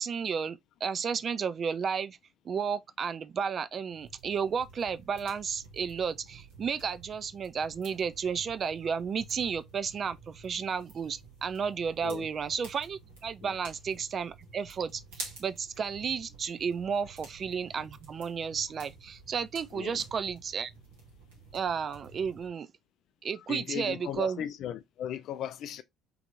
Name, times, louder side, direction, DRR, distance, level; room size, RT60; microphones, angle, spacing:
voice 1, 0.0-2.2 2.5-20.7 21.5-22.7 23.2-24.4, right 6 dB, 40° right, 0.4 m, -33 dB
sound 1, 3.9-22.5, right 3 dB, 70° right, 1.6 m, -50 dB
voice 2, 23.5-25.8, left 10 dB, 55° left, 0.3 m, -37 dB
3.8 x 2.9 x 3.3 m
figure-of-eight pair, 55°, 0 cm